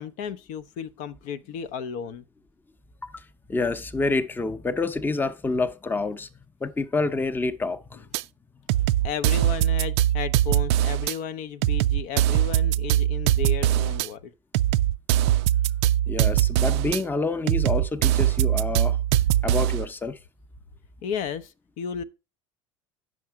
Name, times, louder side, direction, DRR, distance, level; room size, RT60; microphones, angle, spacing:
voice 1, 0.0-2.2 9.0-14.3 21.0-22.0, left 7 dB, 55° left, 0.7 m, -34 dB
voice 2, 3.5-6.3 6.6-8.0 16.1-19.0 19.4-20.2, left 3 dB, 10° left, 0.8 m, -27 dB
sound 1, 8.1-8.2 8.7-11.1 11.6-14.1 14.5-17.0 17.5-19.9, right 12 dB, 55° right, 0.4 m, -22 dB
9.3 x 6.2 x 4.6 m
figure-of-eight pair, 75°, 16 cm